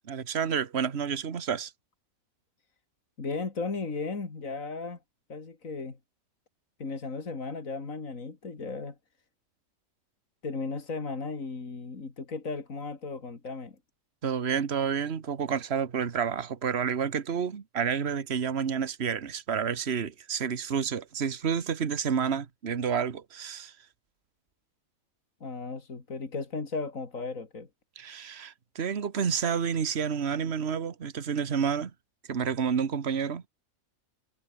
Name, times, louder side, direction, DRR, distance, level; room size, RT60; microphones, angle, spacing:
voice 1, 0.1-1.7 14.2-23.7 28.0-31.9 32.3-33.4, right 7 dB, 50° right, 1.6 m, -29 dB
voice 2, 3.2-5.0 5.3-6.0 6.8-9.0 10.4-13.8 25.4-27.7, left 4 dB, 70° left, 3.2 m, -35 dB
omnidirectional pair, 1.4 m